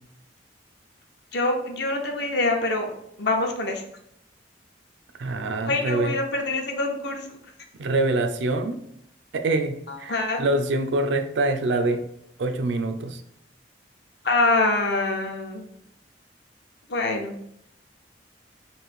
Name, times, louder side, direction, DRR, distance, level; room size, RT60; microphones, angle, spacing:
voice 1, 1.3-2.9 3.2-3.8 5.6-7.2 9.9-10.4 14.2-15.7 16.9-17.3, left 2 dB, 65° left, 3 dB, 0.7 m, -25 dB
voice 2, 5.2-6.2 7.8-8.8 9.3-12.1 12.4-13.2, right 2 dB, 75° right, 7 dB, 0.4 m, -25 dB
3.3 x 2.6 x 4.1 m, 0.73 s
head